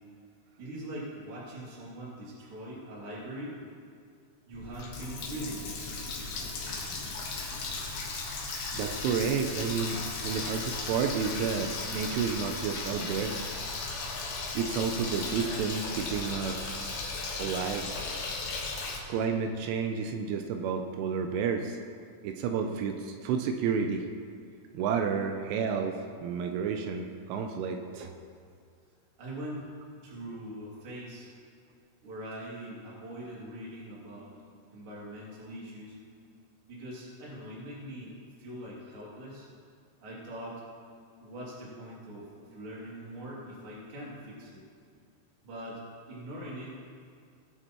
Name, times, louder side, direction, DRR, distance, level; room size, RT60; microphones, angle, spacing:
voice 1, 0.6-3.6 4.5-5.7 29.2-29.7 30.0-31.3 32.0-34.3 34.7-35.9 36.7-39.5 40.0-40.6 41.2-44.6 45.4-45.8 46.1-46.7, right 1 dB, 35° right, -6 dB, 2.4 m, -42 dB
Water tap faucet, 4.5-19.0, left 3 dB, 60° left, 2.4 m, -36 dB
voice 2, 8.7-13.4 14.2-16.9 17.4-17.9 19.1-21.8 22.2-24.1 24.7-28.2, right 6 dB, 80° right, 4 dB, 3.0 m, -31 dB
20.0 x 7.8 x 3.0 m, 2.3 s
omnidirectional pair, 5.8 m